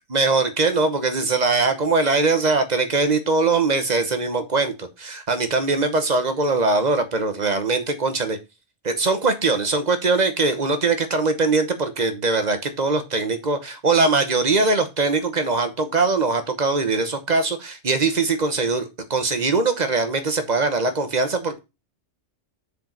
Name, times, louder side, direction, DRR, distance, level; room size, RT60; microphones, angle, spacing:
voice 1, 0.1-8.4 8.8-21.6, right 3 dB, 40° right, 1.1 m, -21 dB
6.6 x 5.1 x 5.2 m
omnidirectional pair, 1.2 m